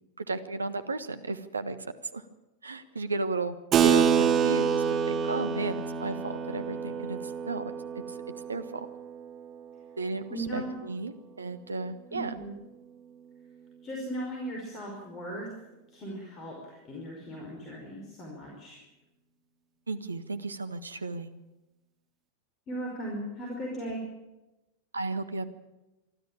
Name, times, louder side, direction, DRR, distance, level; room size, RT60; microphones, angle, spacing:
voice 1, 0.2-1.8 2.1-2.2 2.6-3.5 3.8-8.2 8.5-8.9 10.0-12.3 19.9-21.3 24.9-25.4, right 3 dB, 75° right, 10 dB, 1.3 m, -34 dB
Keyboard (musical), 3.7-9.7, right 7 dB, 30° right, 2.3 m, -27 dB
voice 2, 10.3-10.8 12.1-12.5 13.8-15.5 15.9-18.8 22.7-24.0, right 1 dB, 30° left, 0 dB, 5.2 m, -37 dB
24.5 x 13.0 x 8.9 m, 1.0 s
figure-of-eight pair, 90°, 0 cm